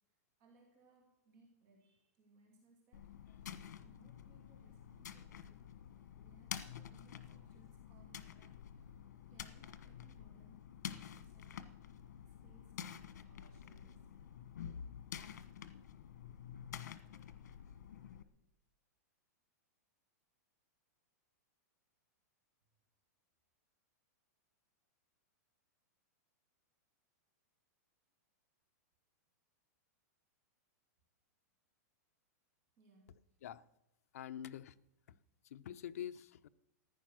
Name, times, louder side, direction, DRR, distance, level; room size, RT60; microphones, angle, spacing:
voice 1, 0.1-9.0 9.3-14.1 32.8-33.4, right 1 dB, 30° right, 2.3 m, -68 dB
sound 1, 2.9-18.2, left 9 dB, 85° left, 1.3 m, -50 dB
voice 2, 34.1-34.7 35.5-36.5, left 10 dB, 60° left, 0.7 m, -45 dB
15.0 x 10.0 x 6.3 m
supercardioid pair, 180°, 9 cm